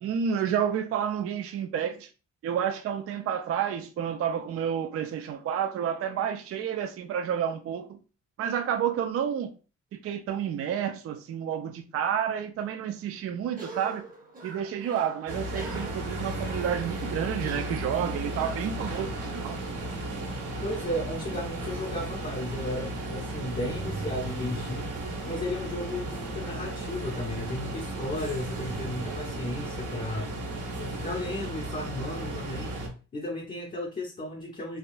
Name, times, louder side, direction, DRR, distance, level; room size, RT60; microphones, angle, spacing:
voice 1, 0.0-2.1 2.4-8.0 8.4-9.5 9.9-14.0 14.4-19.6, right 8 dB, 50° right, 0.4 m, -30 dB
Cough, 13.5-19.3, right 3 dB, 30° right, 0.9 m, -45 dB
sound 1, 15.3-32.9, right 1 dB, 80° right, 1.2 m, -35 dB
voice 2, 20.6-24.9 25.2-30.3 30.8-32.8 33.1-34.8, left 1 dB, 30° left, 0.7 m, -34 dB
3.5 x 2.2 x 2.5 m
cardioid pair, 90°, 30 cm